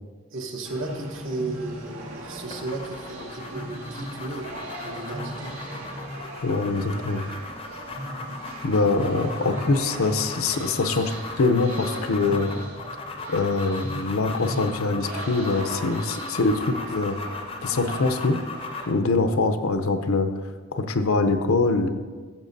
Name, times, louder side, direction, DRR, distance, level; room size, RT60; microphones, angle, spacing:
voice 1, 0.3-4.5 4.8-5.6, right 2 dB, 65° right, 2 dB, 1.1 m, -34 dB
sound 1, 0.6-18.9, right 1 dB, 90° right, 2.0 m, -38 dB
sound 2, 2.5-19.0, left 3 dB, 25° left, 0.5 m, -38 dB
voice 2, 6.4-7.2 8.6-11.1 11.4-12.5 13.3-17.2 17.6-18.4 18.9-20.3 20.7-21.9, left 3 dB, 85° left, 8 dB, 0.6 m, -23 dB
13.5 x 7.2 x 2.6 m, 1.5 s
head